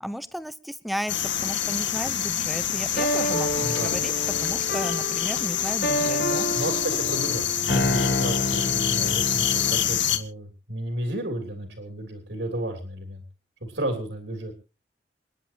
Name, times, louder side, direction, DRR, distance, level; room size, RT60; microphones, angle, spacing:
voice 1, 0.0-4.1 4.4-6.4, equal, ahead, 13 dB, 0.7 m, -34 dB
sound 1, 1.1-10.2, left 10 dB, 80° left, 1.8 m, -26 dB
sound 2, 3.0-9.9, left 1 dB, 55° left, 1.9 m, -29 dB
voice 2, 3.6-4.0 6.3-13.2 13.6-14.5, right 1 dB, 75° right, 3 dB, 3.2 m, -32 dB
28.0 x 10.0 x 2.9 m, 0.31 s
head